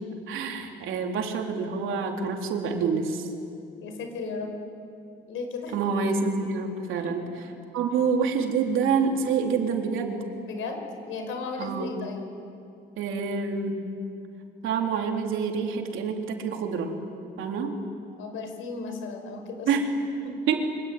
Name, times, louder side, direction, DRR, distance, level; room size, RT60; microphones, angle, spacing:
voice 1, 0.3-3.3 5.7-7.3 7.7-10.2 11.6-12.0 13.0-13.9 14.6-16.9 17.4-17.8 19.7-19.9 20.5-20.7, right 5 dB, 85° right, 2 dB, 3.5 m, -27 dB
voice 2, 3.8-4.6 5.3-5.7 7.0-7.1 10.4-12.3 18.2-19.7 20.2-20.3, left 4 dB, 85° left, 5 dB, 5.7 m, -35 dB
25.0 x 24.0 x 9.4 m, 2.5 s
cardioid pair, 90°, 20 cm